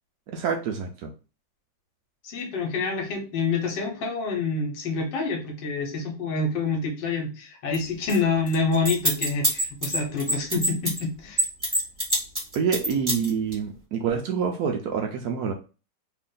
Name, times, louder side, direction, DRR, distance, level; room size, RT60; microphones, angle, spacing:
voice 1, 0.3-1.1 12.5-15.5, right 6 dB, 70° right, 3 dB, 1.0 m, -27 dB
voice 2, 2.2-11.4, left 4 dB, 80° left, 2 dB, 1.6 m, -27 dB
sound 1, 7.7-7.8 8.1-8.2 8.5-11.0 11.4-13.5, equal, 15° right, 1.4 m, -24 dB
3.4 x 2.5 x 3.7 m, 0.34 s
omnidirectional pair, 2.0 m